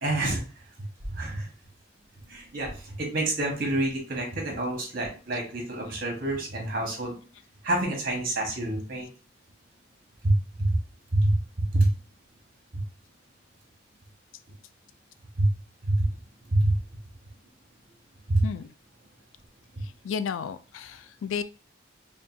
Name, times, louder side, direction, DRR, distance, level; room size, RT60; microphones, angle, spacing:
voice 1, 0.0-0.4 1.1-1.5 2.3-7.2 7.6-9.1 10.2-10.8 11.1-11.9 12.7-12.8 15.4-15.5 15.8-16.1 16.5-16.8 18.3-18.5, right 1 dB, 45° right, 0 dB, 1.4 m, -26 dB
voice 2, 20.0-21.4, left 6 dB, 90° left, 12 dB, 0.4 m, -32 dB
5.1 x 2.4 x 2.7 m, 0.36 s
head